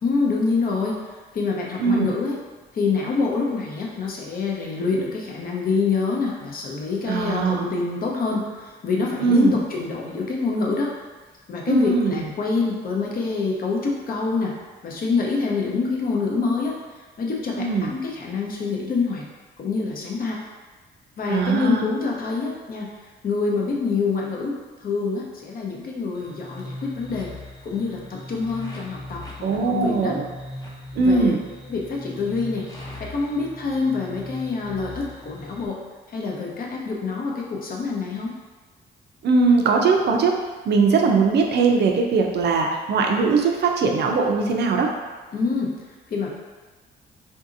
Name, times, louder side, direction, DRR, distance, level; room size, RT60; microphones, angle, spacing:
voice 1, 0.0-1.0 1.3-2.4 2.7-10.9 11.5-14.5 14.8-16.7 17.2-19.2 19.6-20.4 21.2-22.9 23.2-27.3 27.6-29.2 29.7-30.2 31.0-31.3 31.7-32.6 33.0-35.8 36.1-38.3 45.3-45.7 46.1-46.3, left 4 dB, 50° left, -2 dB, 0.7 m, -26 dB
voice 2, 1.8-2.1 7.1-7.7 9.2-9.5 11.7-12.2 17.6-17.9 21.3-21.8 29.4-30.3 31.0-31.4 39.2-40.4 40.7-44.9, right 4 dB, 60° right, 2 dB, 0.5 m, -20 dB
sound 1, 26.1-35.7, left 1 dB, 20° left, 0.7 m, -39 dB
3.8 x 2.7 x 2.6 m, 1.3 s
cardioid pair, 90°, 20 cm